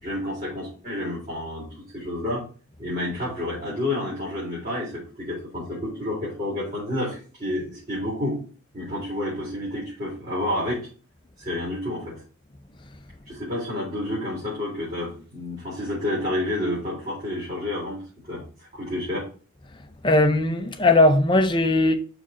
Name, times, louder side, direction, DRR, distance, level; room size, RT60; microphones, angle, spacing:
voice 1, 0.0-2.4 2.8-8.4 8.7-10.8 11.4-12.2 13.3-18.4 18.7-19.3, left 1 dB, 30° right, 3.8 m, -29 dB
voice 2, 20.0-22.0, left 2 dB, 20° left, 0.7 m, -18 dB
6.1 x 4.9 x 4.2 m
head